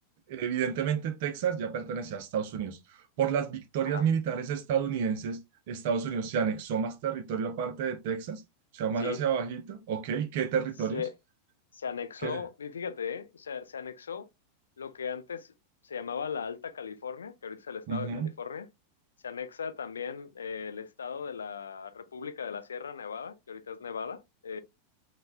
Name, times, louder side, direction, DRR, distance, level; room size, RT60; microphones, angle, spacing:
voice 1, 0.3-2.8 3.2-5.4 5.7-8.4 8.7-11.0 12.2-12.4 17.9-18.3, right 7 dB, 50° right, 0.5 m, -30 dB
voice 2, 11.7-14.3 14.8-15.5 15.8-18.7 19.2-24.6, left 6 dB, 70° left, 0.3 m, -38 dB
3.2 x 2.1 x 2.3 m
figure-of-eight pair, 90°, 0 cm